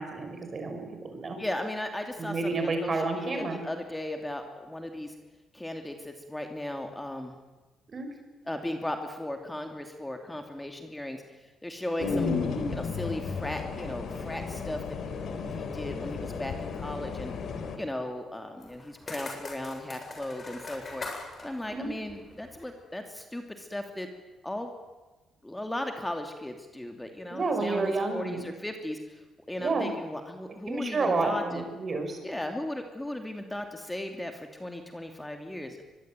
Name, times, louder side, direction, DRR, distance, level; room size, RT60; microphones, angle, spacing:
voice 1, 0.0-1.4 2.2-3.6 7.9-8.1 21.7-21.9 27.3-28.5 29.5-29.9 30.7-32.2, right 3 dB, 40° right, 5 dB, 6.3 m, -30 dB
voice 2, 1.4-5.1 5.5-7.3 8.5-12.3 12.7-14.8 15.5-17.3 17.8-24.1 24.4-24.7 25.4-31.6 32.2-35.8, left 1 dB, 10° left, 5 dB, 2.7 m, -37 dB
sound 1, 12.0-17.8, left 4 dB, 65° left, 3.8 m, -33 dB
sound 2, 18.6-22.8, left 3 dB, 35° left, 7.7 m, -42 dB
23.5 x 21.0 x 9.2 m, 1.2 s
cardioid pair, 90°, 0 cm